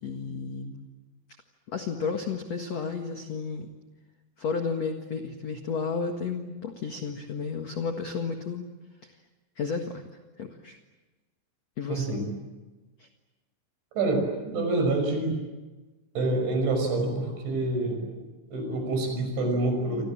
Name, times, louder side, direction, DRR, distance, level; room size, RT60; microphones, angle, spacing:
voice 1, 0.0-0.8 1.7-3.7 4.4-8.7 9.6-10.0 10.4-10.8 11.8-12.1 13.0-13.1, left 5 dB, 55° left, 5 dB, 1.9 m, -32 dB
voice 2, 11.9-12.3 14.0-15.4 16.1-18.0 18.5-20.0, right 2 dB, 70° right, 4 dB, 8.4 m, -27 dB
30.0 x 26.0 x 7.5 m, 1.2 s
omnidirectional pair, 5.6 m